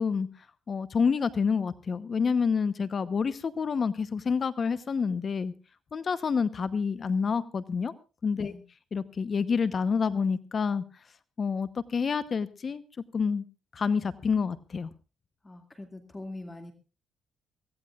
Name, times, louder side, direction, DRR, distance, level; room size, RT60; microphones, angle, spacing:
voice 1, 0.0-5.5 5.9-7.9 8.2-8.5 8.9-11.0 11.4-12.8 13.1-13.5 13.7-14.9, left 5 dB, 45° left, 14 dB, 0.9 m, -28 dB
voice 2, 15.4-16.7, left 2 dB, 20° left, 7 dB, 2.1 m, -42 dB
23.5 x 17.0 x 2.4 m, 0.33 s
cardioid pair, 90°, 0 cm